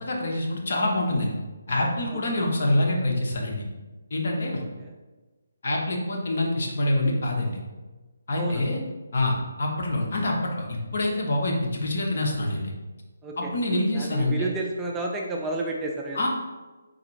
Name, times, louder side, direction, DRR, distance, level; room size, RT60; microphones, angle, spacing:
voice 1, 0.0-1.3 1.7-3.6 4.1-4.6 5.6-7.6 8.3-8.8 9.1-12.7 13.4-14.5 16.1-16.3, left 1 dB, 55° left, -1 dB, 0.9 m, -26 dB
voice 2, 4.6-4.9 8.4-8.6 13.2-13.5 13.9-16.3, right 2 dB, 10° right, -1 dB, 0.3 m, -31 dB
4.0 x 3.4 x 3.1 m, 1.2 s
hypercardioid pair, 160°, 0 cm